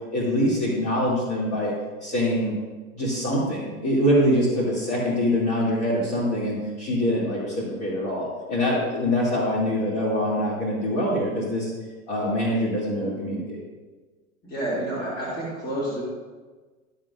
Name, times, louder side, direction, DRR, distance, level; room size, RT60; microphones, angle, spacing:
voice 1, 0.1-1.7 2.0-2.5 2.9-11.7 12.1-13.6, equal, 40° left, -8 dB, 2.9 m, -24 dB
voice 2, 14.4-16.0, right 1 dB, 20° left, -8 dB, 2.8 m, -29 dB
13.5 x 7.5 x 2.6 m, 1.3 s
figure-of-eight pair, 100°, 43 cm